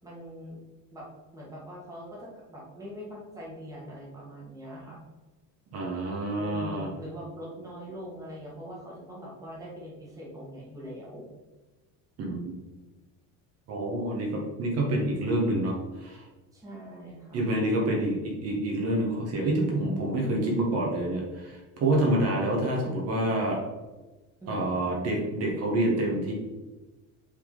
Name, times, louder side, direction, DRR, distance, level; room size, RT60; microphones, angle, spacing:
voice 1, 0.0-0.6 0.9-5.0 6.3-11.3 16.5-17.5 24.4-24.9, equal, 10° right, -4 dB, 1.5 m, -42 dB
voice 2, 5.7-6.9 12.2-12.6 13.7-16.2 17.3-23.6 24.5-26.3, right 1 dB, 45° right, -1 dB, 1.3 m, -27 dB
7.9 x 3.7 x 3.9 m, 1.2 s
cardioid pair, 175°, 35 cm